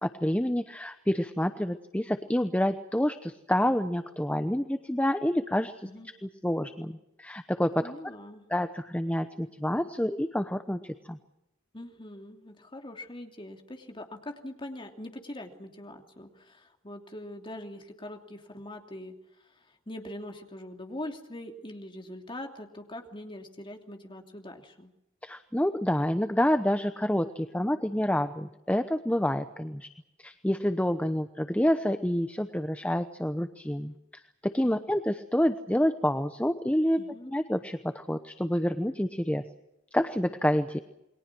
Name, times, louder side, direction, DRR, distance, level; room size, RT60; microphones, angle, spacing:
voice 1, 0.0-5.7 6.4-7.8 8.5-11.2 25.2-29.9 30.2-33.9 34.4-37.0 37.3-39.4 39.9-40.8, equal, 5° left, 9 dB, 0.9 m, -28 dB
voice 2, 5.8-6.1 7.8-8.5 11.7-24.9 34.6-34.8 37.0-37.3, left 1 dB, 25° left, 4 dB, 2.9 m, -43 dB
28.5 x 22.5 x 6.2 m, 0.87 s
head